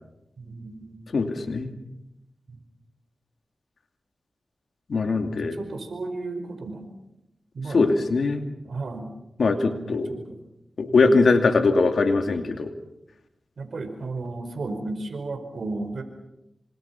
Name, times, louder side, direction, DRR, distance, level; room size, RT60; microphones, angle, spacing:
voice 1, 0.4-1.0 2.5-2.6 5.2-6.9 7.5-8.0 8.6-9.1 9.4-10.4 10.9-11.3 13.6-16.0, right 3 dB, 75° right, 7 dB, 5.1 m, -34 dB
voice 2, 1.1-1.7 4.9-5.6 7.7-8.4 9.4-10.1 10.8-12.7, left 3 dB, 80° left, 6 dB, 2.6 m, -21 dB
27.0 x 25.5 x 6.0 m, 0.88 s
cardioid pair, 45°, 0 cm